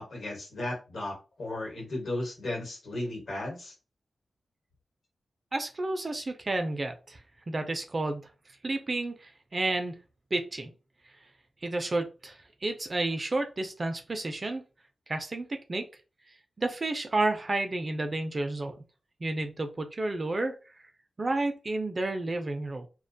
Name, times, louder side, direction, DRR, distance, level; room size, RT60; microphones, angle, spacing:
voice 1, 0.0-3.7, left 1 dB, 70° left, 0 dB, 1.0 m, -35 dB
voice 2, 5.5-7.2 7.5-8.2 8.6-9.9 10.3-10.7 11.6-14.6 15.1-15.8 16.6-18.8 19.2-20.5 21.2-22.9, right 2 dB, 30° right, 6 dB, 0.3 m, -31 dB
2.3 x 2.1 x 2.6 m, 0.32 s
wide cardioid pair, 170°, 0 cm